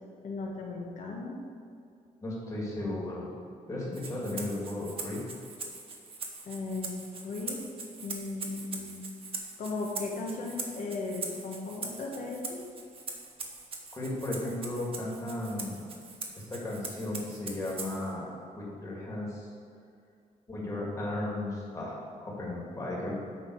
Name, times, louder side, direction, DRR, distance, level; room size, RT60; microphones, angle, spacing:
voice 1, 0.2-1.4 6.4-6.9 7.2-7.6 8.0-9.0 9.6-12.6, left 3 dB, 65° left, -1 dB, 1.4 m, -36 dB
voice 2, 2.2-3.3 3.7-5.2 13.9-15.8 16.4-19.5 20.5-23.2, left 1 dB, 25° left, -4 dB, 2.1 m, -35 dB
Rattle (instrument), 3.9-18.1, right 3 dB, 40° right, 0.9 m, -42 dB
9.0 x 5.8 x 4.7 m, 2.4 s
wide cardioid pair, 150°, 14 cm